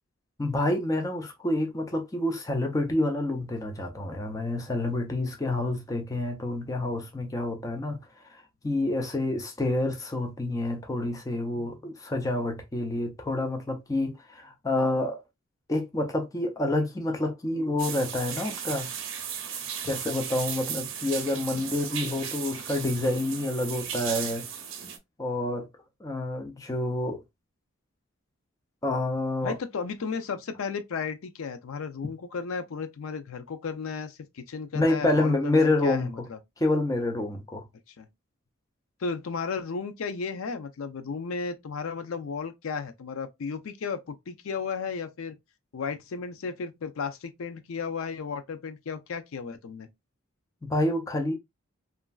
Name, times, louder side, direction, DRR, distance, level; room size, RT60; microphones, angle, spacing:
voice 1, 0.4-8.0 8.6-15.2 15.7-18.9 19.8-24.4 25.2-25.7 26.0-27.2 28.8-29.5 34.7-36.3 36.6-37.6 50.6-51.3, left 2 dB, 15° left, 0.4 m, -28 dB
sound 1, 17.8-25.0, right 8 dB, 65° right, 0.6 m, -36 dB
voice 2, 29.4-36.4 38.0-38.1 39.0-45.4 45.7-49.9, left 5 dB, 80° left, 0.5 m, -34 dB
2.9 x 2.5 x 2.3 m
head